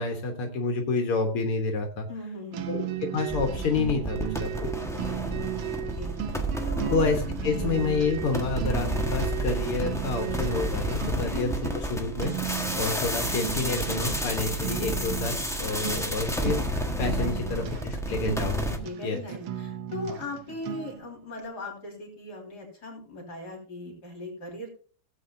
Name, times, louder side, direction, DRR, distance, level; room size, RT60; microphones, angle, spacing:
voice 1, 0.0-2.1 2.7-2.9 3.1-4.7 6.9-16.7 17.0-18.6 19.0-19.2, left 4 dB, 85° left, 3 dB, 2.3 m, -29 dB
voice 2, 2.1-2.8 5.0-5.2 5.8-7.0 7.4-7.7 11.1-11.3 15.7-15.9 17.2-17.9 18.6-24.7, left 2 dB, 50° left, 1 dB, 4.1 m, -39 dB
sound 1, 2.5-21.1, right 11 dB, 85° right, 1.8 m, -36 dB
sound 2, 3.3-18.8, equal, ahead, 1.1 m, -31 dB
17.0 x 8.5 x 2.8 m, 0.41 s
omnidirectional pair, 2.3 m